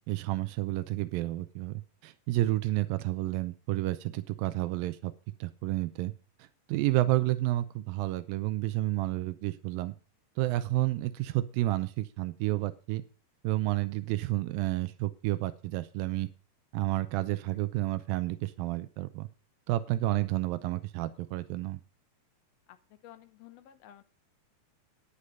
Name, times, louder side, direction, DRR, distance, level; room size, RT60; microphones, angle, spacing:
voice 1, 0.0-5.1 5.4-6.1 6.4-9.9 10.4-13.0 13.4-16.3 16.7-19.3 19.7-21.8, right 17 dB, 90° right, 13 dB, 2.4 m, -30 dB
voice 2, 23.0-24.0, left 12 dB, 70° left, 10 dB, 1.5 m, -52 dB
10.0 x 8.4 x 5.5 m, 0.37 s
omnidirectional pair, 4.0 m